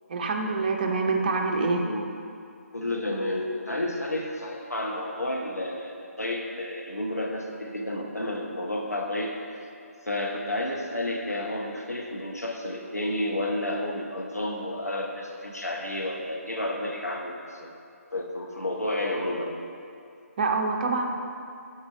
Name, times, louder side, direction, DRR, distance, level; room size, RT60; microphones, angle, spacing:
voice 1, 0.1-1.9 20.4-21.1, right 3 dB, 35° right, 3 dB, 0.5 m, -25 dB
voice 2, 2.7-9.7 10.0-17.7 18.1-19.6, left 1 dB, 85° left, -1 dB, 0.8 m, -31 dB
4.7 x 4.3 x 5.1 m, 2.4 s
figure-of-eight pair, 145°, 8 cm